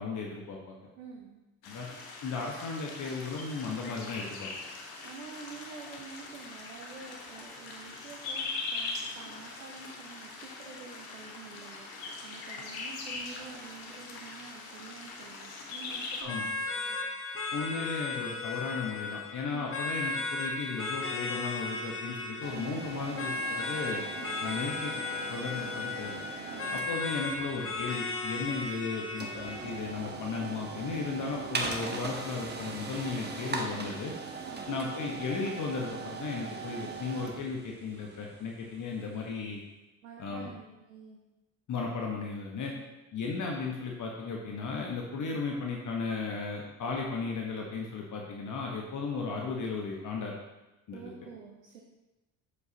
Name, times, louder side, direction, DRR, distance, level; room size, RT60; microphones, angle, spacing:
voice 1, 0.0-0.8 1.7-1.9 2.2-4.5 16.2-16.5 17.5-24.0 24.4-24.9 25.3-26.2 26.7-34.1 34.7-39.6 40.2-40.5 41.7-42.7 43.1-50.3 50.9-51.0, left 4 dB, 45° left, 0 dB, 1.3 m, -35 dB
voice 2, 1.0-1.4 5.0-17.0 19.4-19.7 24.1-24.3 26.5-27.0 28.4-28.6 34.4-34.7 40.0-41.2 42.7-42.9 50.9-51.8, right 5 dB, 85° right, 0 dB, 0.9 m, -48 dB
sound 1, 1.6-16.2, left 3 dB, 65° left, 1.5 m, -41 dB
sound 2, 16.3-29.9, left 3 dB, 30° left, 1.4 m, -36 dB
sound 3, 22.4-39.3, right 4 dB, 25° right, 1.3 m, -40 dB
8.2 x 7.7 x 2.9 m, 1.0 s
hypercardioid pair, 55°, 40 cm